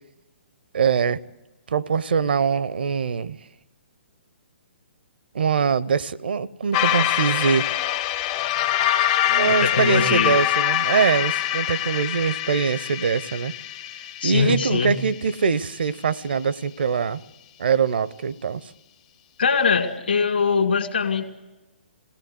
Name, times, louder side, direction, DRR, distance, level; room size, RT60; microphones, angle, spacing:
voice 1, 0.7-1.2 1.7-3.4 5.3-7.7 9.2-13.5 14.2-17.2 17.6-18.6, right 6 dB, 60° right, 19 dB, 0.6 m, -23 dB
sound 1, 6.7-15.2, left 12 dB, 30° left, 0.6 m, -24 dB
voice 2, 9.5-10.4 14.2-15.0 19.4-21.2, left 5 dB, 65° left, 8 dB, 2.1 m, -22 dB
22.5 x 17.5 x 8.0 m, 1.1 s
figure-of-eight pair, 125°, 6 cm